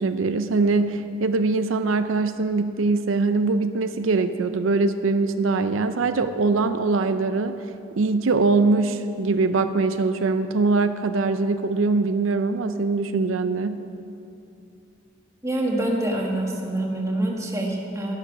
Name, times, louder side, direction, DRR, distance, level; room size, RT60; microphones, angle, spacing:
voice 1, 0.0-7.6 8.0-13.8, right 3 dB, 90° right, 10 dB, 0.5 m, -22 dB
voice 2, 15.4-18.1, right 1 dB, 15° right, -1 dB, 1.6 m, -26 dB
11.5 x 10.5 x 6.0 m, 2.6 s
head